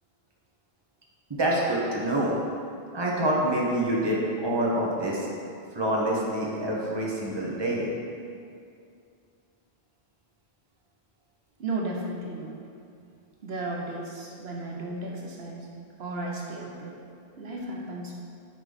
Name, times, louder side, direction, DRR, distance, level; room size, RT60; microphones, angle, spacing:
voice 1, 1.3-2.3 2.9-5.3 5.7-7.9, right 1 dB, 25° right, -4 dB, 1.2 m, -26 dB
voice 2, 11.6-12.6 13.4-15.7 16.0-17.0 17.4-18.1, right 2 dB, 80° right, -1 dB, 1.2 m, -34 dB
8.8 x 4.6 x 4.1 m, 2.4 s
omnidirectional pair, 1.0 m